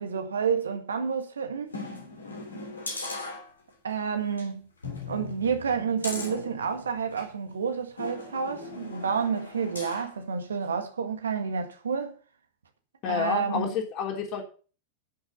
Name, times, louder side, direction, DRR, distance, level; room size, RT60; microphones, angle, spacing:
voice 1, 0.0-1.7 3.8-4.7 5.1-12.1 13.1-13.7, right 6 dB, 70° right, 1.7 m, -29 dB
sound 1, 1.7-3.9 4.3-4.5 4.8-7.3 8.0-10.2 10.6-10.7, left 3 dB, 75° left, 3.2 m, -39 dB
voice 2, 13.0-14.4, left 7 dB, 40° left, 3.3 m, -29 dB
10.0 x 6.4 x 6.9 m
figure-of-eight pair, 90°, 0 cm